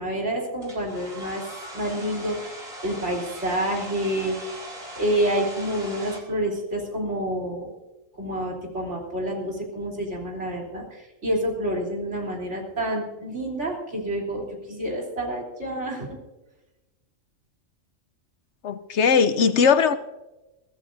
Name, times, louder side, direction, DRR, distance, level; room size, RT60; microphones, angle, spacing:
voice 1, 0.0-1.4 1.7-4.6 5.0-7.8 8.2-16.1, right 1 dB, 60° right, -2 dB, 3.6 m, -28 dB
Domestic sounds home sounds, 0.6-6.2, right 1 dB, 90° right, 3.5 m, -40 dB
voice 2, 18.6-20.0, left 6 dB, 65° left, 12 dB, 0.9 m, -19 dB
22.5 x 14.0 x 2.6 m, 1.1 s
omnidirectional pair, 1.3 m